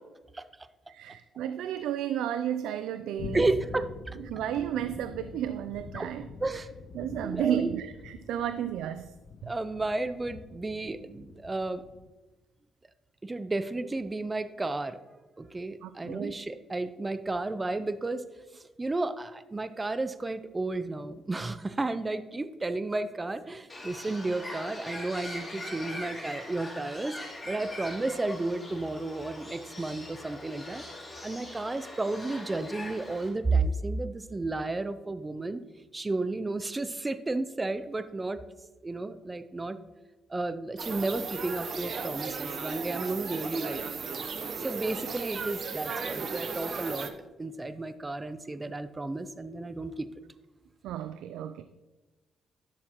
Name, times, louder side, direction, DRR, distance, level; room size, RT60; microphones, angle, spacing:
voice 1, 0.9-3.4 4.2-6.3 6.9-9.1 9.4-9.5 15.8-16.3 50.8-51.6, right 10 dB, 90° right, 11 dB, 0.3 m, -33 dB
sound 1, 3.2-12.1, left 5 dB, 55° left, 0.5 m, -45 dB
voice 2, 3.3-4.2 5.9-6.1 6.4-6.7 7.2-7.7 9.4-11.8 13.2-15.0 15.4-18.2 18.8-27.2 27.5-30.8 31.2-35.6 35.9-38.4 38.8-39.8 40.3-43.8 44.6-47.1 47.4-50.1, right 2 dB, 20° right, 12 dB, 0.5 m, -32 dB
Bird, 23.7-33.3, left 1 dB, 20° left, 2.8 m, -42 dB
sound 2, 40.8-47.1, right 5 dB, 50° right, 0.8 m, -35 dB
11.0 x 6.6 x 3.0 m, 1.2 s
cardioid pair, 90°, 0 cm